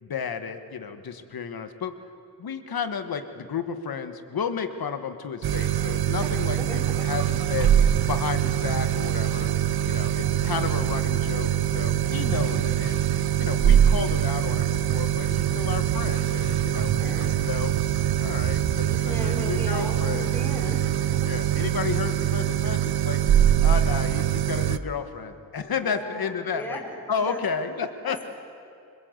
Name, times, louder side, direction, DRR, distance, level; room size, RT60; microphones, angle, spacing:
voice 1, 0.0-1.9 2.4-7.7 8.0-9.5 9.9-13.0 13.4-17.7 18.2-20.3 21.2-23.2 23.6-26.8 27.1-28.3, left 6 dB, 75° left, 9 dB, 1.6 m, -32 dB
sound 1, 5.4-24.8, right 10 dB, 80° right, 0.8 m, -23 dB
voice 2, 6.7-7.1 12.3-12.7 17.0-17.3 18.8-21.0 25.8-27.4 28.1-28.3, equal, 5° left, -1 dB, 4.0 m, -37 dB
25.5 x 21.0 x 8.1 m, 2.4 s
wide cardioid pair, 155°, 37 cm